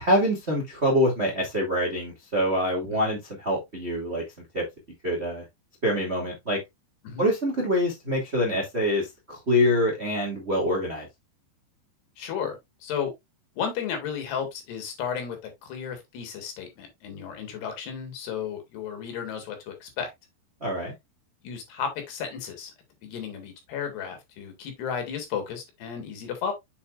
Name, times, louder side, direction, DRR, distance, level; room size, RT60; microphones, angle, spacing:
voice 1, 0.0-4.2 4.5-4.6 5.0-5.4 5.8-6.6 7.2-11.1 20.6-20.9, equal, 25° right, 1.6 m, -25 dB
voice 2, 12.2-13.1 13.6-20.1 21.4-22.7 23.0-26.5, left 7 dB, 70° left, 3.8 m, -33 dB
7.3 x 7.2 x 2.4 m
omnidirectional pair, 5.0 m